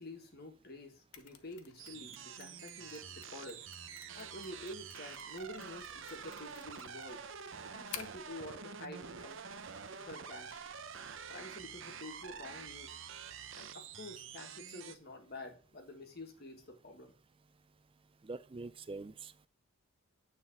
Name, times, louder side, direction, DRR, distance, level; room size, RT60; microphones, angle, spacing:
voice 1, 0.0-3.6 4.2-7.2 7.7-9.4 9.9-10.6 11.3-13.0 13.5-17.1, left 1 dB, 45° left, 1.6 m, -48 dB
Mechanisms, 1.1-8.3, left 9 dB, 75° left, 0.9 m, -53 dB
sound 1, 1.8-15.0, right 6 dB, 55° right, 0.7 m, -47 dB
voice 2, 18.2-19.5, right 3 dB, 25° right, 0.4 m, -45 dB
9.2 x 4.0 x 7.1 m
head